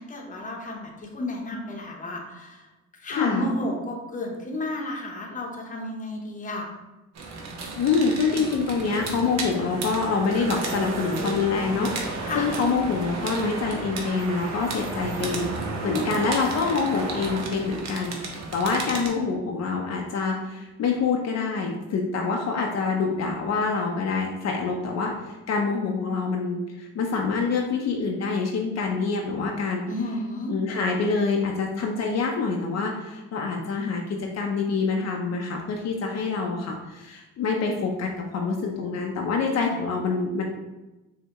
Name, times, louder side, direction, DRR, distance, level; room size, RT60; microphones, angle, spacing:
voice 1, 0.0-2.7 3.0-6.7 12.2-12.5 29.9-30.5, left 1 dB, 25° left, 0 dB, 0.8 m, -32 dB
voice 2, 3.1-3.5 7.8-29.8 30.5-40.4, left 4 dB, 60° left, 0 dB, 0.6 m, -26 dB
sound 1, 7.2-19.1, right 3 dB, 60° right, 0.8 m, -33 dB
5.6 x 2.2 x 2.9 m, 1.0 s
cardioid pair, 90°, 30 cm